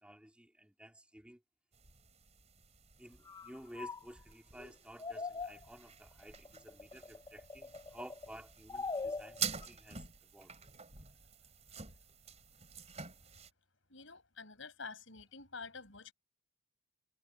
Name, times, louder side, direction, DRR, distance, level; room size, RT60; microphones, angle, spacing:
voice 1, 0.0-1.4 3.0-10.1 10.3-10.6, right 1 dB, 5° right, 3.4 m, -53 dB
sound 1, 1.7-13.5, right 7 dB, 35° right, 4.1 m, -48 dB
sound 2, 3.3-4.0 4.6-4.7 5.0-5.7 6.2-8.3 8.7-9.7, left 4 dB, 20° left, 0.6 m, -42 dB
voice 2, 13.9-16.1, left 4 dB, 70° left, 7.3 m, -48 dB
head